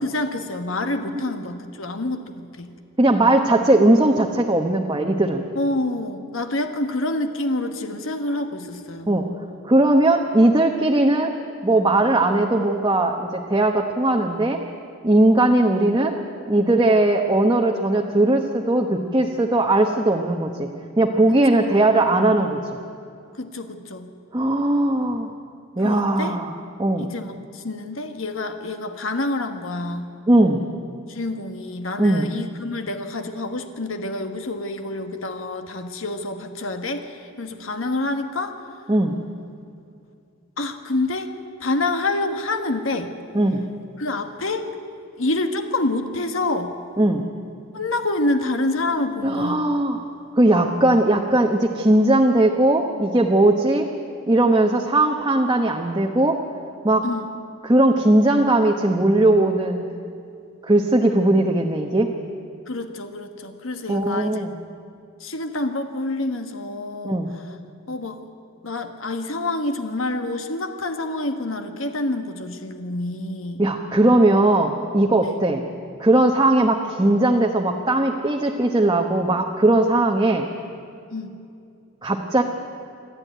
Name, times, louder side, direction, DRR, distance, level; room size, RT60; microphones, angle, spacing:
voice 1, 0.0-2.7 5.5-9.1 21.3-21.4 23.4-24.1 25.8-26.4 27.0-30.1 31.1-38.6 40.6-41.3 41.6-43.1 44.0-44.7 45.2-46.7 47.7-49.7 57.0-57.3 62.7-64.4 65.2-67.4 67.9-68.2 68.6-73.6 75.2-75.4 81.1-81.3, left 2 dB, 70° left, 7 dB, 1.4 m, -27 dB
voice 2, 3.0-5.4 9.1-9.3 9.6-11.3 11.6-14.6 15.0-16.2 16.5-20.7 21.0-22.6 24.3-25.3 25.8-26.5 26.8-27.1 30.3-30.6 32.0-32.3 38.9-39.2 43.3-43.6 47.0-47.2 49.2-50.0 50.4-53.9 54.3-56.4 56.8-57.0 57.6-59.8 60.6-62.1 63.9-64.5 67.0-67.3 73.6-75.6 76.0-80.5 82.0-82.4, right 1 dB, 20° right, 1 dB, 1.1 m, -19 dB
28.0 x 12.0 x 9.3 m, 2.5 s
head